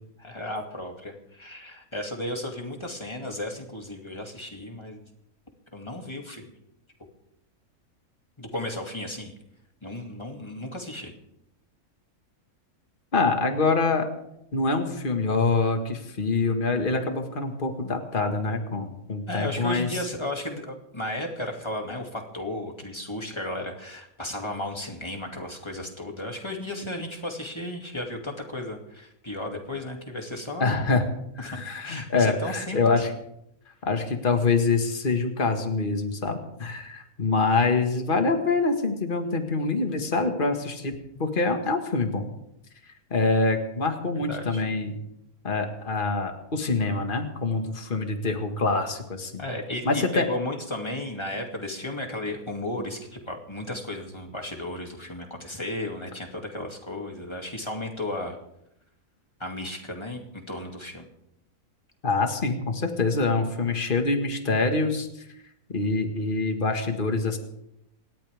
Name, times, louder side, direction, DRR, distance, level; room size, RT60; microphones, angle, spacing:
voice 1, 0.2-5.0 5.7-6.5 8.4-9.3 9.8-11.1 19.3-30.8 31.4-32.8 44.1-44.6 49.4-58.4 59.4-61.1, left 1 dB, 20° left, 2 dB, 2.6 m, -34 dB
voice 2, 13.1-14.1 14.5-19.9 30.6-31.0 31.4-33.1 33.9-42.3 43.1-45.0 45.4-49.4 49.9-50.3 62.0-65.1 65.7-67.4, left 3 dB, 35° left, 4 dB, 2.0 m, -25 dB
28.5 x 13.0 x 3.6 m, 0.81 s
omnidirectional pair, 1.6 m